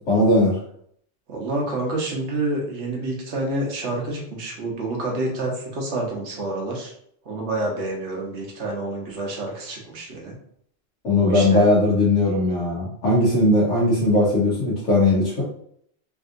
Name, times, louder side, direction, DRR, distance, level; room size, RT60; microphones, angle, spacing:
voice 1, 0.1-0.6 11.0-15.4, left 2 dB, 75° left, -8 dB, 1.3 m, -19 dB
voice 2, 1.3-6.9 7.2-10.3 11.2-11.7, right 2 dB, 70° right, -1 dB, 1.2 m, -28 dB
3.5 x 2.6 x 2.5 m, 0.67 s
omnidirectional pair, 1.2 m